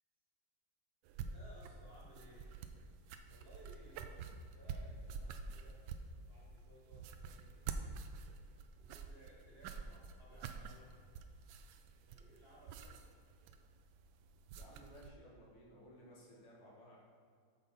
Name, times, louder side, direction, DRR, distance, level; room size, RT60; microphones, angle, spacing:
sound 1, 1.1-15.1, right 5 dB, 75° right, 1.2 m, -48 dB
voice 1, 1.3-2.5 3.3-5.8 6.2-7.5 8.8-10.9 12.0-13.0, equal, 30° right, -5 dB, 1.7 m, -61 dB
voice 2, 14.5-17.0, equal, 85° left, -4 dB, 2.7 m, -58 dB
8.6 x 6.7 x 4.1 m, 2.2 s
omnidirectional pair, 2.4 m